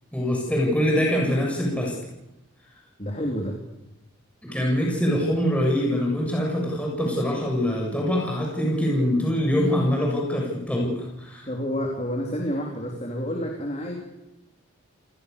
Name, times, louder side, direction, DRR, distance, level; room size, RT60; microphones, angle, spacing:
voice 1, 0.1-1.9 4.4-11.5, equal, 5° left, -2 dB, 7.4 m, -24 dB
voice 2, 3.0-3.6 11.5-13.9, equal, 30° left, 0 dB, 4.0 m, -29 dB
29.0 x 21.5 x 7.0 m, 0.93 s
head